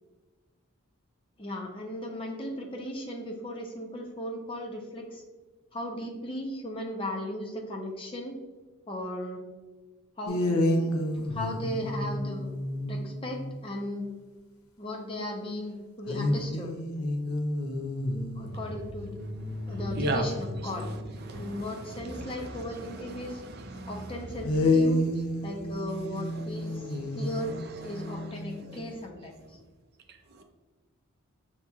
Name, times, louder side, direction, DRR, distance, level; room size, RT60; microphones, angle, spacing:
voice 1, 1.4-5.2 5.7-8.4 8.9-9.4 10.2-10.8 11.1-12.5 12.9-14.1 14.8-16.8 18.4-19.2 19.7-20.9 21.3-23.4 23.9-25.0 25.4-27.6 27.8-29.6, left 1 dB, 25° left, 1 dB, 0.6 m, -36 dB
sound 1, 10.3-13.6 16.1-21.5 24.4-28.8, left 1 dB, 80° left, 0.5 m, -30 dB
voice 2, 19.5-20.3 20.6-20.7 21.2-24.4 26.2-28.8 30.1-30.4, right 2 dB, 45° right, 5 dB, 0.4 m, -38 dB
6.7 x 2.9 x 2.3 m, 1.3 s
head